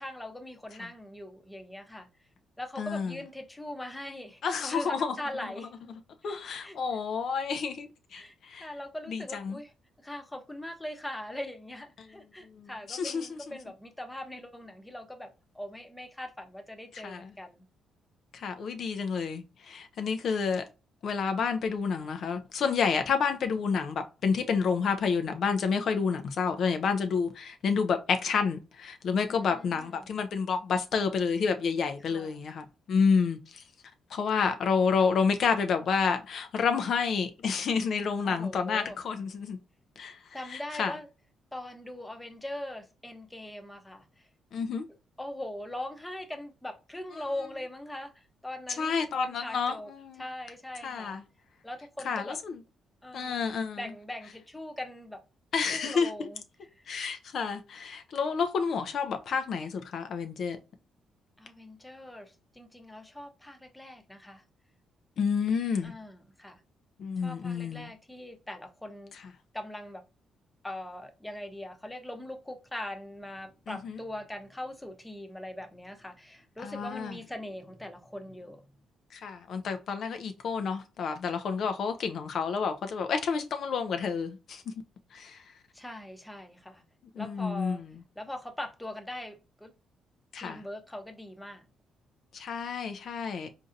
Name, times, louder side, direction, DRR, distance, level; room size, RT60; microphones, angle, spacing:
voice 1, 0.0-2.1 2.6-5.7 6.2-6.3 6.6-6.8 8.1-8.3 8.6-9.7 10.0-17.7 29.2-30.1 32.1-32.4 38.2-39.0 40.3-41.1 41.5-44.3 45.2-49.9 50.2-51.2 51.6-52.4 53.0-55.2 55.7-56.8 61.4-64.4 65.8-66.6 67.2-69.2 69.5-70.0 70.6-78.6 85.7-86.8 87.2-87.8 88.2-89.7 90.4-91.7, left 1 dB, 10° left, 0.7 m, -41 dB
voice 2, 2.8-3.2 4.4-5.1 6.2-8.7 9.1-9.6 12.5-13.4 16.9-17.3 18.3-20.6 21.0-33.6 34.1-39.6 40.0-40.9 44.5-44.8 48.7-50.2 50.8-51.2 52.0-52.6 53.1-53.8 55.5-56.3 56.9-60.6 65.2-65.9 67.0-67.9 69.1-69.2 73.7-74.0 76.6-77.1 79.1-84.7 85.1-85.4 87.1-87.9 90.3-90.6 92.3-93.5, left 5 dB, 60° left, 0.4 m, -29 dB
3.9 x 2.6 x 2.5 m
cardioid pair, 90°, 0 cm